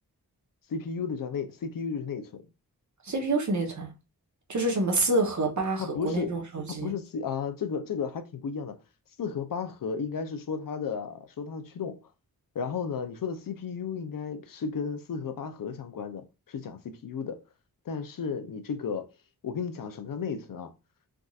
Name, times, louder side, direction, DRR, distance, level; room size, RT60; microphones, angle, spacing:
voice 1, 0.7-2.4 5.8-6.3 6.7-8.7 9.2-12.0 12.5-17.4 17.9-19.1 19.4-20.7, left 6 dB, 60° left, 0.6 m, -33 dB
voice 2, 3.0-3.9 4.5-6.9, right 2 dB, 50° right, 1.0 m, -27 dB
3.5 x 2.6 x 2.3 m
wide cardioid pair, 80°, 38 cm